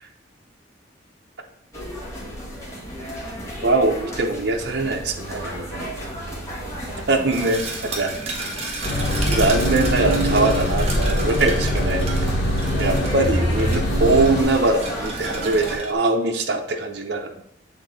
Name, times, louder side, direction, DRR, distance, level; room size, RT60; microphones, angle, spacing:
sound 1, 1.7-15.8, equal, 15° left, 1.4 m, -34 dB
voice 1, 3.6-5.9 7.1-7.6 8.0-8.1 9.3-12.3 12.8-17.4, right 2 dB, 60° right, 1 dB, 0.7 m, -22 dB
sound 2, 7.3-15.9, right 3 dB, 35° right, 1.0 m, -33 dB
sound 3, 8.8-14.4, equal, 65° left, 1.4 m, -22 dB
8.0 x 3.6 x 4.0 m, 0.69 s
head